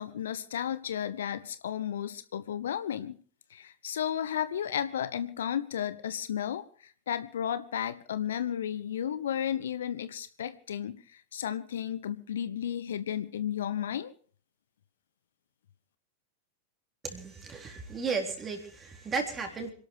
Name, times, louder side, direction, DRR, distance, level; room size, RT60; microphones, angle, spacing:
voice 1, 0.0-3.2 3.5-14.1, left 9 dB, 65° left, 13 dB, 1.0 m, -33 dB
voice 2, 17.0-19.7, right 4 dB, 20° right, 3 dB, 3.8 m, -34 dB
26.5 x 12.0 x 4.6 m, 0.43 s
figure-of-eight pair, 90°, 0 cm